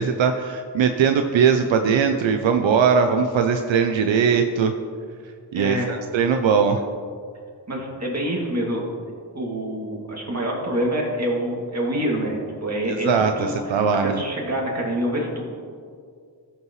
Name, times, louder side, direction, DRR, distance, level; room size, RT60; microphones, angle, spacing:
voice 1, 0.0-4.7 5.5-6.8 12.9-14.2, right 6 dB, 85° right, 6 dB, 0.6 m, -20 dB
voice 2, 5.5-5.9 7.7-8.9 9.3-15.4, equal, 35° right, -2 dB, 2.3 m, -26 dB
14.0 x 5.7 x 3.1 m, 2.1 s
cardioid pair, 60°, 44 cm